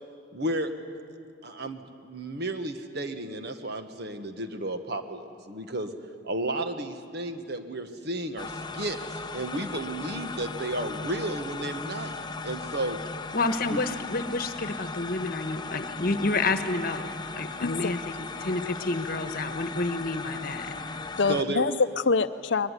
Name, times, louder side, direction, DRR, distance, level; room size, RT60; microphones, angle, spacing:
voice 1, 0.3-0.7 1.4-5.9 6.2-9.0 9.3-13.0 13.7-13.8 21.3-21.8, right 1 dB, 55° right, 7 dB, 1.5 m, -33 dB
sound 1, 8.4-21.4, left 3 dB, 20° left, 0.7 m, -37 dB
voice 2, 13.3-17.1 17.4-20.7, left 3 dB, 45° left, 9 dB, 1.3 m, -29 dB
voice 3, 17.6-18.1 21.2-22.7, left 4 dB, 65° left, 13 dB, 0.6 m, -25 dB
22.0 x 20.5 x 9.8 m, 2.3 s
head